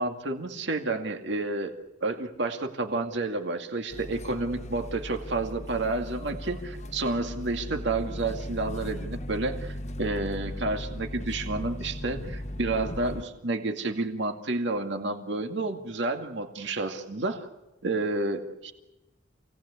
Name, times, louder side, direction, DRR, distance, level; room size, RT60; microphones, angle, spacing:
voice 1, 0.0-1.7 2.0-17.5 17.8-18.7, right 2 dB, 70° right, 5 dB, 2.2 m, -30 dB
sound 1, 3.9-13.2, left 1 dB, 40° left, 1.2 m, -37 dB
28.0 x 18.5 x 8.4 m, 1.0 s
head